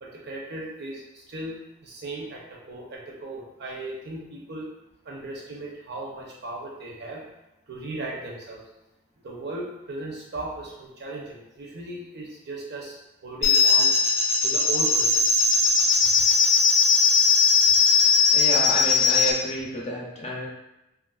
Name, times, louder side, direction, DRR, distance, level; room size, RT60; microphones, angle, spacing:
voice 1, 0.0-1.5 1.8-4.7 5.0-7.2 7.7-8.6 9.2-13.0 13.2-13.9 14.4-15.2, right 2 dB, 55° right, -2 dB, 0.6 m, -37 dB
sound 1, 13.4-19.3, left 4 dB, 80° left, 0.6 m, -19 dB
voice 2, 18.3-20.5, right 1 dB, 30° left, -3 dB, 0.6 m, -30 dB
3.2 x 2.4 x 2.3 m, 0.90 s
head